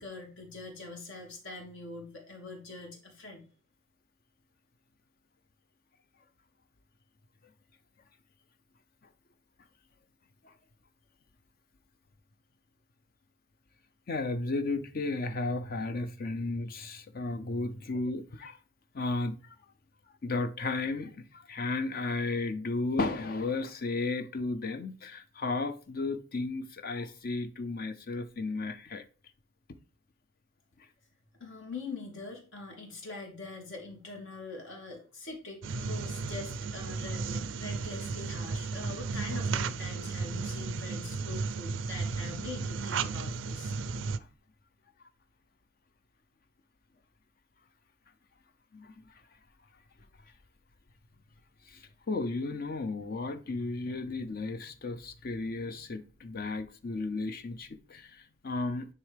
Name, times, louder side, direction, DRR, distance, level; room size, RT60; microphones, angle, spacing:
voice 1, 0.0-3.5 31.4-43.7, left 3 dB, 75° left, 2.7 m, -43 dB
voice 2, 14.1-18.6 18.9-19.6 20.2-29.0 48.7-49.2 51.6-58.9, left 3 dB, 50° left, 0.5 m, -34 dB
sound 1, 35.6-44.2, right 4 dB, 75° right, 0.4 m, -34 dB
9.5 x 3.6 x 3.4 m
head